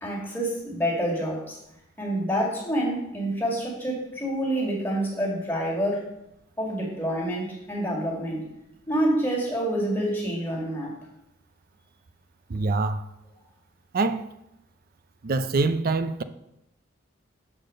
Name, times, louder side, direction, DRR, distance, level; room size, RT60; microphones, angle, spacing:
voice 1, 0.0-1.6 2.0-6.1 6.6-8.4 8.9-11.0, right 1 dB, 10° left, 2.0 m, -27 dB
voice 2, 12.5-13.0 13.9-14.3 15.2-16.2, right 3 dB, 50° right, 0.5 m, -25 dB
6.7 x 4.2 x 6.3 m
head